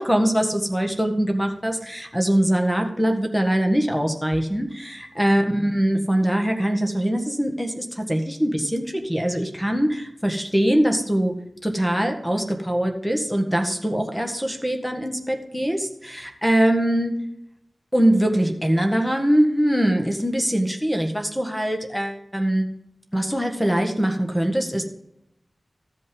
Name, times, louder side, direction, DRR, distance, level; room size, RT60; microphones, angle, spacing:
voice 1, 0.0-11.3 11.6-17.1 17.9-22.7 23.1-24.8, right 1 dB, 5° left, 4 dB, 1.6 m, -22 dB
14.0 x 5.3 x 5.2 m, 0.79 s
wide cardioid pair, 60°, 0 cm